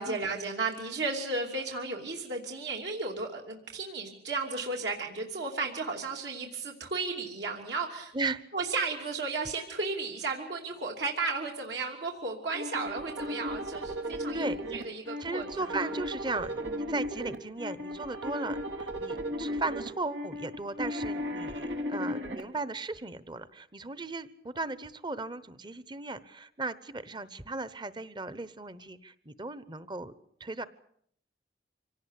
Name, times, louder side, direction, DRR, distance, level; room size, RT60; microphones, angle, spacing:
voice 1, 0.0-8.1 8.5-15.9, right 3 dB, 70° right, 0 dB, 3.0 m, -34 dB
sound 1, 12.5-22.4, equal, 90° right, 3.1 m, -35 dB
voice 2, 15.2-30.1 30.4-30.7, right 3 dB, 25° right, 16 dB, 1.0 m, -36 dB
25.5 x 18.0 x 8.3 m, 0.67 s
head